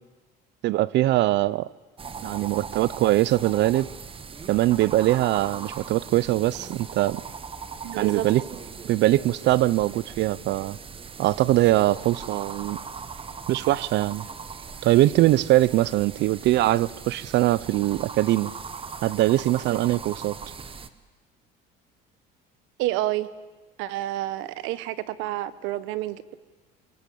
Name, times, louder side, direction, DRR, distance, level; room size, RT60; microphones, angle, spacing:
voice 1, 0.6-1.7 2.2-3.9 4.5-7.2 8.0-8.4 8.8-10.8 11.2-12.8 13.5-14.2 14.8-18.5 19.0-20.3, right 16 dB, 65° right, 0.8 m, -22 dB
sound 1, 2.0-20.9, right 5 dB, 25° right, 1.4 m, -39 dB
voice 2, 7.8-8.3 19.7-20.0 22.8-23.3 23.8-26.4, right 15 dB, 80° right, 1.3 m, -29 dB
26.0 x 23.0 x 8.6 m
cardioid pair, 125°, 20 cm